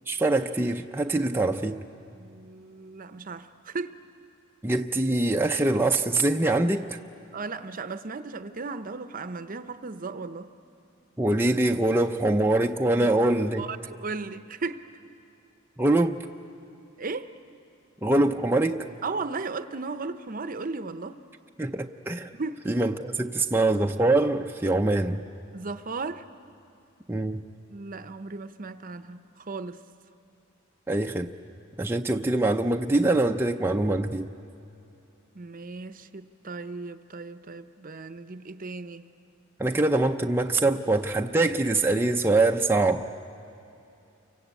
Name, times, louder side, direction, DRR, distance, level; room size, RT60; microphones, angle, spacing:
voice 1, 0.1-1.8 4.6-7.0 11.2-13.7 15.8-16.2 18.0-18.9 21.6-22.3 22.7-25.2 27.1-27.4 30.9-31.3 31.8-34.3 39.6-43.1, right 2 dB, 10° right, 0.6 m, -24 dB
voice 2, 2.1-3.9 7.3-10.5 13.6-14.8 17.0-17.3 19.0-21.2 22.3-22.6 25.5-26.2 27.7-29.8 35.3-39.1, right 3 dB, 45° right, 0.8 m, -36 dB
29.5 x 24.5 x 8.3 m
head